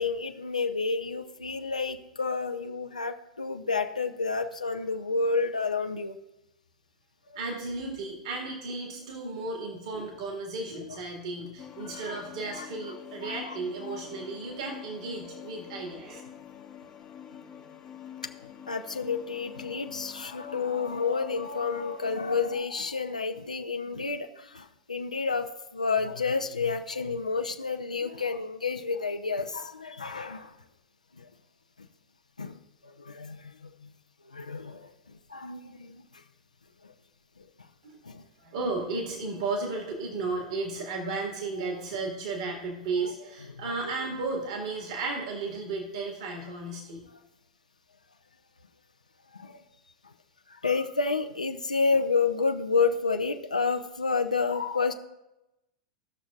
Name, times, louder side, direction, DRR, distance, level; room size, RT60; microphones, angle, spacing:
voice 1, 0.0-6.2 12.1-12.2 12.6-12.7 13.2-13.5 13.9-14.0 18.7-30.6 31.2-31.3 32.4-32.6 32.8-33.9 34.2-34.9 35.3-36.0 36.8-36.9 37.4-37.5 38.0-38.2 41.6-41.7 43.0-43.1 43.8-43.9 49.3-49.6 50.5-54.9, left 4 dB, 85° left, 5 dB, 0.5 m, -30 dB
voice 2, 7.3-16.2 37.8-38.0 38.4-47.0, right 3 dB, 60° right, 0 dB, 1.9 m, -34 dB
sound 1, 11.6-22.6, left 10 dB, 30° left, 0.8 m, -46 dB
16.0 x 6.2 x 2.4 m, 0.93 s
figure-of-eight pair, 95°, 4 cm